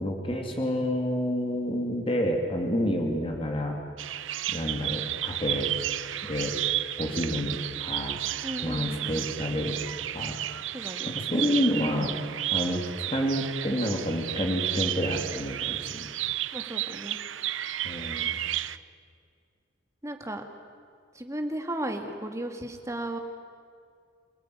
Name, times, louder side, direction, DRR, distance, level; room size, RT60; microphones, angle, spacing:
voice 1, 0.0-3.8 4.5-5.7 6.2-6.5 7.0-8.2 8.6-9.8 10.1-10.4 11.1-12.2 12.5-16.0 17.8-18.4, equal, 30° left, 2 dB, 2.8 m, -29 dB
Bird vocalization bird call bird song, 4.0-18.8, right 13 dB, 85° right, 0.7 m, -32 dB
voice 2, 8.4-9.2 10.7-11.1 16.5-17.2 20.0-20.4 21.2-23.2, right 1 dB, 15° right, 5 dB, 2.0 m, -35 dB
27.5 x 17.5 x 9.7 m, 2.2 s
head